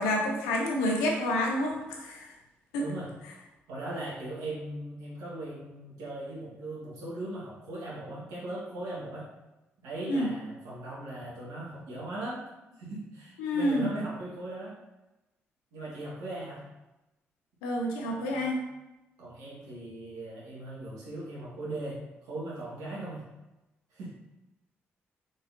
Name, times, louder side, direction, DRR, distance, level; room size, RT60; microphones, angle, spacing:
voice 1, 0.0-2.3 2.7-2.8 10.1-10.3 13.4-13.9 17.6-18.6, left 1 dB, 90° left, 0 dB, 0.6 m, -28 dB
voice 2, 2.8-3.1 3.7-9.3 9.8-12.4 12.7-14.8 15.7-16.6 18.0-18.6 19.2-23.2 23.9-24.1, right 1 dB, 80° right, -6 dB, 1.5 m, -39 dB
3.9 x 3.8 x 2.7 m, 0.98 s
hypercardioid pair, 45°, 6 cm